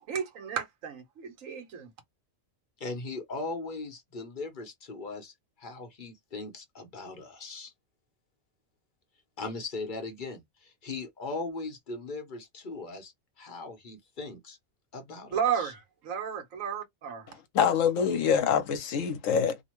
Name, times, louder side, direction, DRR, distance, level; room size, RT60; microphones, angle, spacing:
voice 1, 0.1-1.9 15.3-17.3, right 8 dB, 75° right, 1.3 m, -33 dB
voice 2, 2.8-7.7 9.4-14.6 14.9-15.7, left 3 dB, 40° left, 0.9 m, -39 dB
voice 3, 17.5-19.6, left 7 dB, 70° left, 1.0 m, -25 dB
2.9 x 2.2 x 3.0 m
omnidirectional pair, 1.4 m